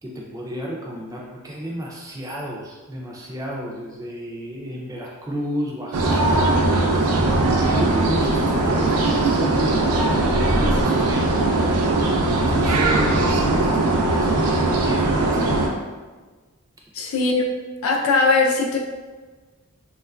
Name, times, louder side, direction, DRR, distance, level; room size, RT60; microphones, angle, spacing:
voice 1, 0.0-11.4 12.3-15.8, equal, 15° right, -3 dB, 0.3 m, -32 dB
sound 1, 5.9-15.7, right 2 dB, 85° right, 0.4 m, -20 dB
voice 2, 16.9-17.4 17.8-18.8, left 3 dB, 70° left, 0 dB, 0.4 m, -19 dB
3.0 x 2.3 x 2.2 m, 1.3 s
head